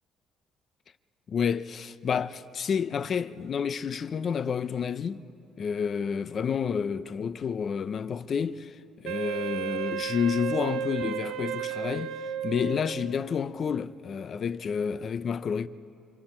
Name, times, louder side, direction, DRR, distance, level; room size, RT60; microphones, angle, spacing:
voice 1, 1.3-5.2 5.6-8.8 9.0-12.1 12.4-15.7, left 7 dB, 45° left, 0.6 m, -29 dB
Wind instrument woodwind instrument, 9.0-13.3, right 9 dB, 85° right, 0.9 m, -33 dB
26.0 x 26.0 x 4.4 m
cardioid pair, 105°, 0 cm